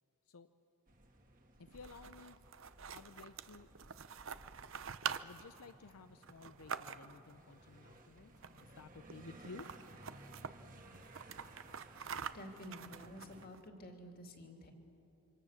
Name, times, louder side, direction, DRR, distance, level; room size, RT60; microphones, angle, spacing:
sound 1, 0.9-13.5, right 1 dB, 35° right, 2.0 m, -59 dB
voice 1, 1.6-2.4 2.9-3.7 5.2-8.3 8.6-9.7, left 4 dB, 80° left, 10 dB, 0.6 m, -54 dB
sound 2, 1.7-7.3 8.3-8.8 9.1-9.2 9.4-10.5 10.9-13.6, right 7 dB, 60° right, 0.7 m, -46 dB
voice 2, 11.8-14.7, equal, 40° left, 3 dB, 2.6 m, -52 dB
26.5 x 25.0 x 7.3 m, 2.9 s
head